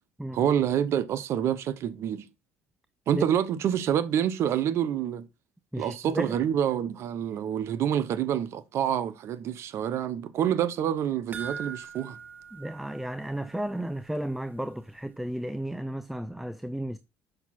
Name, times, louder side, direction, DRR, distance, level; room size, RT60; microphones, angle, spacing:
voice 1, 0.3-2.2 3.1-5.3 5.8-12.2, right 9 dB, 60° right, 0.9 m, -27 dB
voice 2, 5.7-6.4 12.5-17.0, right 1 dB, 5° right, 0.6 m, -33 dB
sound 1, 11.3-13.9 14.2-14.3 14.7-14.8, right 6 dB, 40° right, 1.0 m, -42 dB
6.7 x 5.8 x 4.3 m
supercardioid pair, 90°, 5 cm